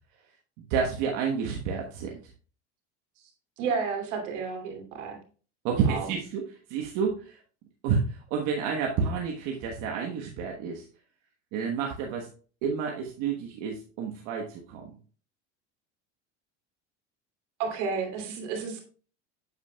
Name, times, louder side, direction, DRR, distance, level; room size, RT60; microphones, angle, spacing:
voice 1, 0.6-2.2 5.6-6.4 6.7-7.4 7.8-10.9 11.5-12.3 12.6-14.8, right 6 dB, 60° right, 0 dB, 1.3 m, -29 dB
voice 2, 3.6-5.2 5.8-6.1 17.6-18.9, right 5 dB, 80° right, 2 dB, 2.7 m, -31 dB
8.2 x 8.1 x 2.3 m, 0.39 s
supercardioid pair, 100°, 36 cm